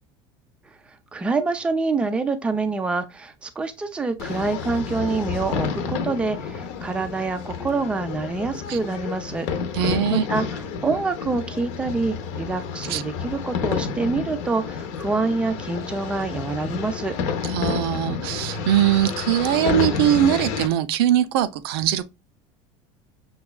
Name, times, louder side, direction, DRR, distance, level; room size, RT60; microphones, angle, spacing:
voice 1, 1.1-9.5 10.1-17.2, right 3 dB, 10° right, 0.4 m, -26 dB
sound 1, 4.2-20.7, left 6 dB, 60° left, 0.7 m, -30 dB
voice 2, 9.7-10.2 12.9-13.0 17.4-22.0, right 11 dB, 90° right, 0.4 m, -21 dB
5.7 x 2.3 x 2.2 m
cardioid pair, 150°, 12 cm